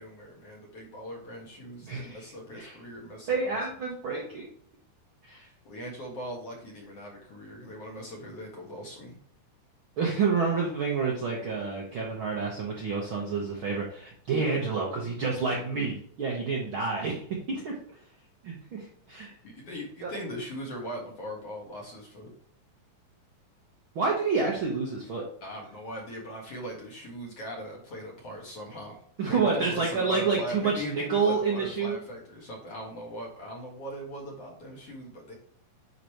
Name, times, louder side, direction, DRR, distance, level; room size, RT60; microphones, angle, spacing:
voice 1, 0.0-3.6 5.4-9.1 19.4-22.3 25.4-35.3, equal, 50° left, -2 dB, 2.3 m, -40 dB
voice 2, 1.8-2.2 2.5-2.7 3.3-4.5 5.2-5.4 10.0-17.2 17.5-17.7 18.4-19.3 20.0-20.1 23.9-25.2 29.2-32.0, right 4 dB, 60° right, -2 dB, 1.3 m, -28 dB
10.0 x 4.2 x 3.1 m, 0.62 s
omnidirectional pair, 4.0 m